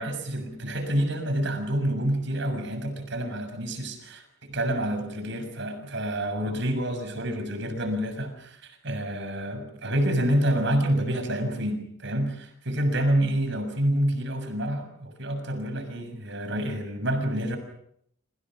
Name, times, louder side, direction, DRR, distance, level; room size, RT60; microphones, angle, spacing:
voice 1, 0.0-4.2 4.5-17.6, right 1 dB, 60° right, 8 dB, 6.8 m, -28 dB
27.5 x 27.0 x 6.2 m, 0.69 s
head